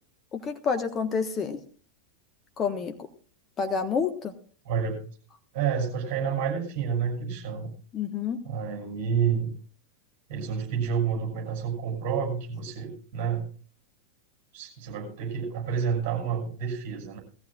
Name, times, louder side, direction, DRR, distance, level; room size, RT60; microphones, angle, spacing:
voice 1, 0.3-1.6 2.6-2.9 3.6-4.3 7.9-8.4, left 6 dB, 25° left, 8 dB, 1.3 m, -28 dB
voice 2, 4.6-5.0 5.5-7.8 8.4-9.5 10.3-13.5 14.5-17.2, right 7 dB, 45° right, 0 dB, 6.6 m, -29 dB
19.5 x 14.5 x 2.4 m, 0.41 s
figure-of-eight pair, 90°, 0 cm